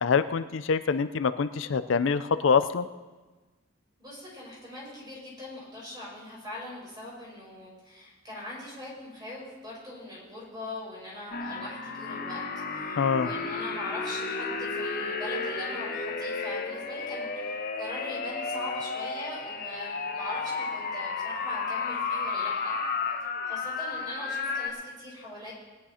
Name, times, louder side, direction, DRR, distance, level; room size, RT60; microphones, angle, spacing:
voice 1, 0.0-2.9 13.0-13.3, left 5 dB, 70° left, 13 dB, 0.4 m, -25 dB
voice 2, 4.0-12.4 12.7-22.7 23.2-25.5, left 1 dB, 20° right, -4 dB, 5.0 m, -41 dB
sound 1, 11.3-24.7, left 4 dB, 45° left, 1.1 m, -33 dB
19.0 x 10.0 x 4.3 m, 1.2 s
head